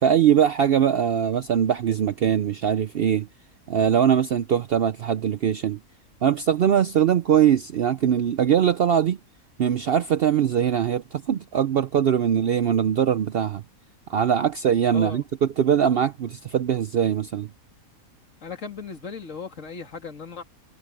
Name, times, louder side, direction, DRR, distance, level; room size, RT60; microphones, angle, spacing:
voice 1, 0.0-3.3 3.7-5.8 6.2-9.2 9.6-13.6 14.1-15.2 15.6-17.5, right 9 dB, 65° right, 0.6 m, -21 dB
voice 2, 14.9-15.2 18.4-20.4, left 4 dB, 60° left, 2.7 m, -36 dB
omnidirectional pair, 1.5 m